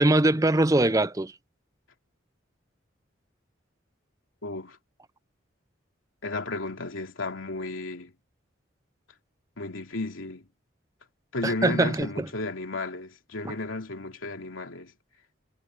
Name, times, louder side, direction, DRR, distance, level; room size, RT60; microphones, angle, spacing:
voice 1, 0.0-1.3 11.4-12.3 13.4-13.5, right 2 dB, 15° right, 0.5 m, -22 dB
voice 2, 4.4-4.8 6.2-8.1 9.6-10.5 11.3-14.9, left 2 dB, 90° left, 3.1 m, -33 dB
head